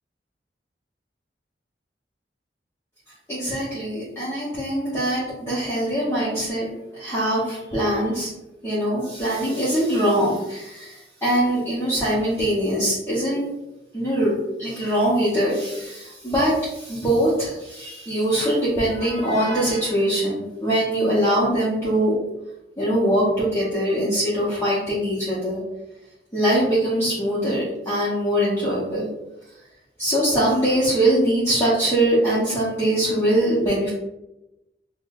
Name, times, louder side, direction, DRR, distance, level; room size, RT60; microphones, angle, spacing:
voice 1, 3.3-8.3 8.6-13.5 13.9-14.3 14.6-22.2 22.8-25.6 26.3-29.1 30.0-33.9, right 1 dB, 15° left, -10 dB, 0.8 m, -22 dB
5.0 x 2.0 x 2.3 m, 0.95 s
head